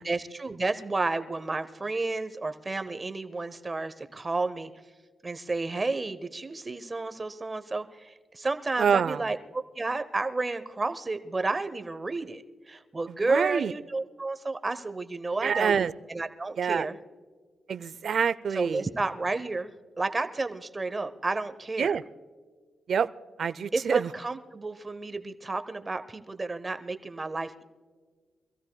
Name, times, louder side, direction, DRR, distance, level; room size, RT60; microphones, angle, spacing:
voice 1, 0.0-4.7 5.2-15.8 16.1-17.0 18.6-19.7 20.0-22.0 23.7-27.6, right 3 dB, 25° right, 11 dB, 0.8 m, -31 dB
voice 2, 8.8-9.3 13.1-13.7 15.4-15.9 16.6-16.9 17.7-18.9 21.8-22.0 22.9-23.1 23.4-24.1, right 7 dB, 65° right, 16 dB, 0.5 m, -26 dB
25.0 x 15.5 x 2.3 m, 1.5 s
cardioid pair, 85°, 0 cm